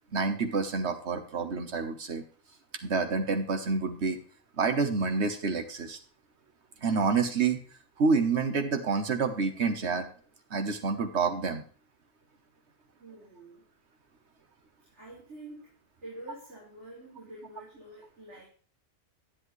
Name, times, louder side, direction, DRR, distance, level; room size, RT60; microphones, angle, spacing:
voice 1, 0.1-2.2 2.8-4.2 4.6-6.0 6.8-7.6 8.0-10.1 10.5-11.6, right 4 dB, 70° right, 7 dB, 1.4 m, -28 dB
voice 2, 13.0-13.6 14.9-15.7 16.0-18.5, right 1 dB, 90° right, -7 dB, 4.9 m, -47 dB
10.5 x 10.0 x 3.2 m, 0.41 s
omnidirectional pair, 1.2 m